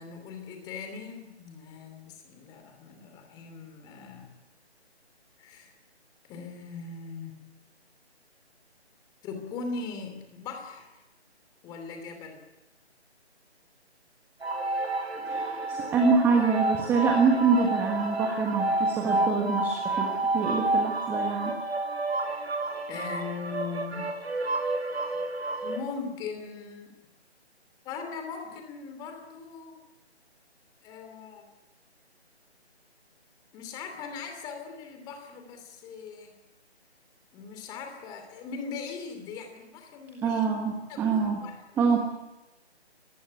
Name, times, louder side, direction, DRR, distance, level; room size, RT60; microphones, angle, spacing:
voice 1, 0.0-4.3 5.4-5.7 6.3-7.3 9.2-10.9 11.6-12.4 22.2-22.5 22.9-24.1 25.6-26.9 27.8-29.8 30.8-31.5 33.5-36.3 37.3-40.5 40.9-42.0, left 5 dB, 10° left, 5 dB, 2.9 m, -40 dB
sound 1, 14.4-25.8, right 2 dB, 65° right, 6.8 m, -29 dB
voice 2, 15.2-21.5 40.2-41.4 41.8-42.0, right 5 dB, 5° right, 1 dB, 1.5 m, -25 dB
24.0 x 19.5 x 9.7 m, 1.0 s
figure-of-eight pair, 155°, 34 cm